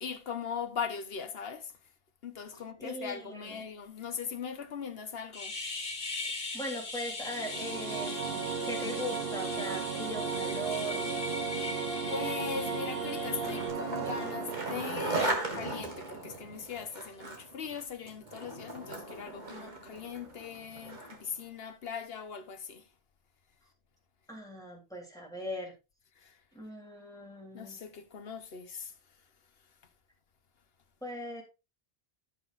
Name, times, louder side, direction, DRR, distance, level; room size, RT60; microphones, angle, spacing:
voice 1, 0.0-1.7 2.2-5.6 11.4-11.7 12.1-22.9 26.2-26.4 27.5-28.9, left 6 dB, 70° left, 1.3 m, -40 dB
voice 2, 2.8-3.7 6.2-8.4 8.7-11.0 24.3-25.7 26.5-27.8 31.0-31.4, equal, 5° left, 3.5 m, -40 dB
sound 1, 5.3-13.7, left 3 dB, 55° left, 2.0 m, -40 dB
sound 2, 7.2-15.0, right 5 dB, 65° right, 1.1 m, -35 dB
Skateboard, 13.0-21.3, right 2 dB, 45° right, 2.0 m, -38 dB
15.5 x 6.1 x 2.6 m
omnidirectional pair, 1.1 m